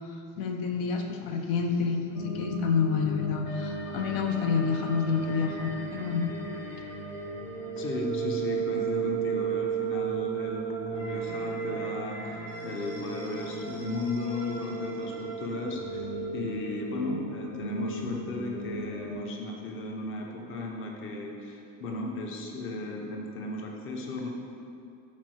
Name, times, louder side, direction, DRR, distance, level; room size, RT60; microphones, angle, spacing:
voice 1, 0.4-6.3, left 5 dB, 80° left, 4 dB, 0.9 m, -28 dB
sound 1, 2.1-19.1, right 4 dB, 60° left, 1.8 m, -35 dB
voice 2, 7.8-24.3, left 2 dB, 35° left, 1 dB, 0.8 m, -35 dB
8.7 x 4.3 x 6.3 m, 2.5 s
cardioid pair, 175°, 35 cm